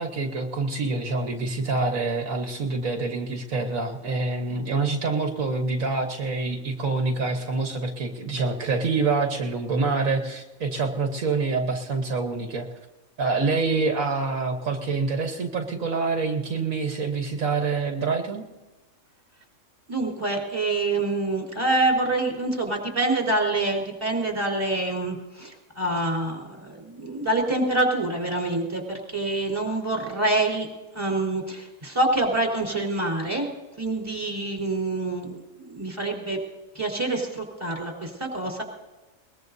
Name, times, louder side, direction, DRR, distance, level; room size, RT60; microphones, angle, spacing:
voice 1, 0.0-12.7 13.2-18.5, right 3 dB, 75° right, 3 dB, 1.7 m, -26 dB
voice 2, 19.9-30.7 30.9-33.5 33.8-36.4 36.7-38.6, right 2 dB, 20° right, -1 dB, 4.2 m, -26 dB
22.0 x 20.5 x 2.7 m, 1.1 s
omnidirectional pair, 1.4 m